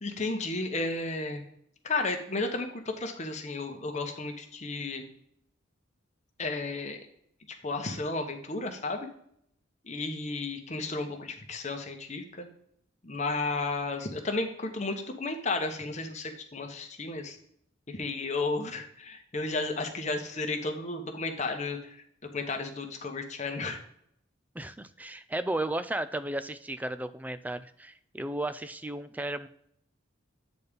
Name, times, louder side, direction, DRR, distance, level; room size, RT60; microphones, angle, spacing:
voice 1, 0.0-1.4 1.8-5.0 6.4-7.0 7.6-9.1 9.8-12.5 13.0-17.4 17.9-22.0 22.3-23.8, left 3 dB, 35° left, 4 dB, 1.1 m, -33 dB
voice 2, 24.5-29.5, right 1 dB, 10° right, 12 dB, 0.4 m, -34 dB
8.4 x 4.3 x 5.1 m, 0.69 s
head